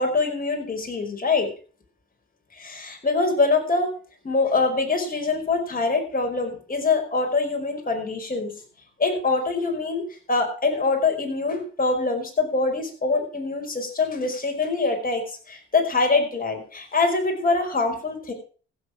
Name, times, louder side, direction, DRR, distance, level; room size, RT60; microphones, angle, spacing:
voice 1, 0.0-1.5 2.5-3.9 4.2-8.5 9.0-18.3, left 3 dB, 30° left, 3 dB, 5.1 m, -24 dB
15.5 x 7.6 x 6.2 m, 0.40 s
cardioid pair, 90°, 30 cm